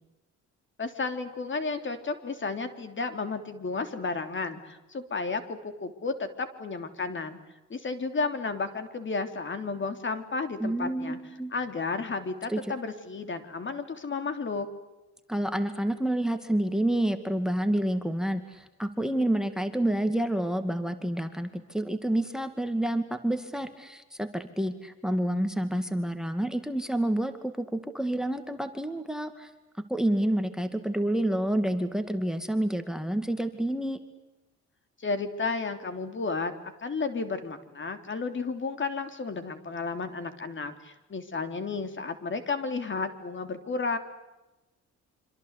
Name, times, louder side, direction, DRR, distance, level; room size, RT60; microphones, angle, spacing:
voice 1, 0.8-7.4 7.7-11.2 11.5-14.7 35.0-36.5 36.8-44.0, left 4 dB, 40° left, 9 dB, 3.3 m, -32 dB
voice 2, 10.6-11.5 12.5-12.6 15.3-29.5 29.9-34.0, right 1 dB, ahead, 10 dB, 2.2 m, -28 dB
27.0 x 26.0 x 8.3 m, 1.0 s
cardioid pair, 90°, 30 cm